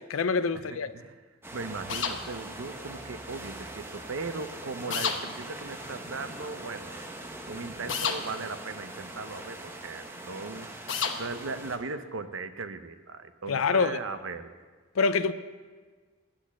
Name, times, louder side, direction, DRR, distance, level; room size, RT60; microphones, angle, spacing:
voice 1, 0.1-0.9 13.5-14.0 15.0-15.3, left 5 dB, 90° left, 0.5 m, -25 dB
sound 1, 1.4-11.8, right 1 dB, 10° right, 0.9 m, -42 dB
voice 2, 1.5-7.0 7.5-14.5, right 3 dB, 75° right, 0.7 m, -38 dB
sound 2, 1.9-2.2 4.9-5.2 7.9-8.2 10.9-11.2, left 6 dB, 65° left, 1.0 m, -29 dB
10.5 x 8.4 x 7.3 m
head